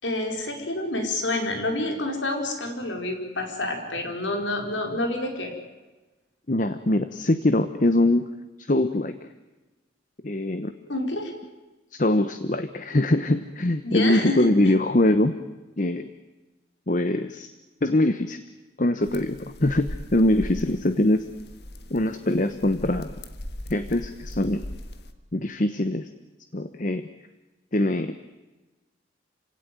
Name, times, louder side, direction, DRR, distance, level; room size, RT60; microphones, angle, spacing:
voice 1, 0.0-5.5 10.9-11.3 13.8-14.5, left 2 dB, 85° left, 3 dB, 4.8 m, -28 dB
voice 2, 6.5-8.3 8.7-9.3 10.2-10.7 11.9-15.4 15.8-16.1 16.9-17.5 17.8-18.4 18.8-21.2 21.9-23.1 23.7-24.7 25.3-26.1 26.5-27.1 27.7-28.1, left 1 dB, 45° left, 10 dB, 1.0 m, -23 dB
sound 1, 19.0-25.1, left 1 dB, 60° left, 1.7 m, -39 dB
27.5 x 17.0 x 9.3 m, 1.1 s
head